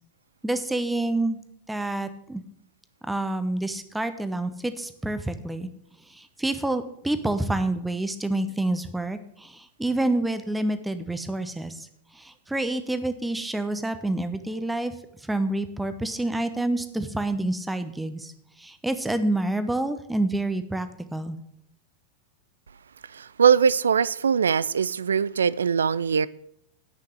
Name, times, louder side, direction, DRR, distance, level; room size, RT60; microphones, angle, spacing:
voice 1, 0.4-1.4 1.7-2.4 3.1-5.7 6.1-11.9 12.1-14.9 15.2-18.3 18.6-21.4, right 2 dB, 5° right, 10 dB, 0.9 m, -28 dB
voice 2, 23.1-26.3, right 7 dB, 70° right, 20 dB, 0.3 m, -21 dB
9.9 x 5.7 x 7.8 m, 0.74 s
figure-of-eight pair, 90°, 0 cm